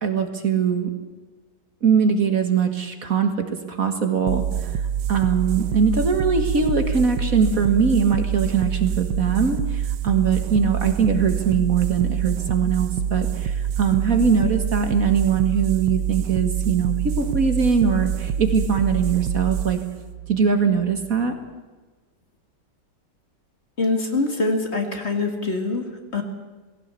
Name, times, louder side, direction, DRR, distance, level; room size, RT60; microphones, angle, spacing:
voice 1, 0.0-0.9 1.8-4.7 5.1-19.8 20.3-21.3, right 6 dB, 50° right, 6 dB, 2.0 m, -21 dB
sound 1, 4.3-21.3, right 8 dB, 75° right, 1.5 m, -26 dB
voice 2, 23.8-26.2, left 3 dB, 35° left, 4 dB, 2.2 m, -24 dB
19.0 x 17.0 x 8.3 m, 1.3 s
omnidirectional pair, 1.9 m